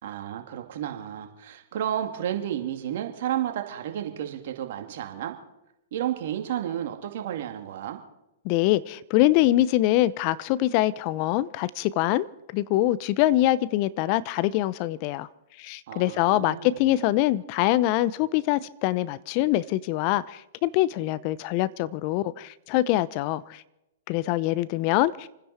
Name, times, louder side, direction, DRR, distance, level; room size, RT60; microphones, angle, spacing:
voice 1, 0.0-5.3 5.9-8.0 15.9-16.8, right 11 dB, 60° right, 4 dB, 2.5 m, -32 dB
voice 2, 8.4-12.3 12.5-15.3 15.6-23.6 24.1-25.3, left 15 dB, 45° left, 19 dB, 0.7 m, -24 dB
28.5 x 10.0 x 4.3 m, 0.91 s
hypercardioid pair, 115°, 0 cm